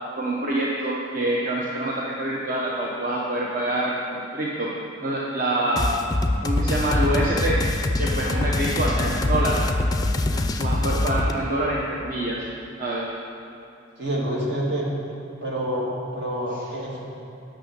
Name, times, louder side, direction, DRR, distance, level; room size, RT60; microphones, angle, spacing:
voice 1, 0.2-4.7 5.0-5.9 6.4-7.6 8.0-9.6 10.2-12.4 12.8-13.1, right 1 dB, 45° right, -5 dB, 0.9 m, -26 dB
sound 1, 5.8-11.3, left 2 dB, 20° left, 0.4 m, -24 dB
voice 2, 14.0-14.9 15.4-17.1, right 1 dB, 60° right, -3 dB, 2.0 m, -27 dB
9.0 x 6.2 x 7.2 m, 2.7 s
head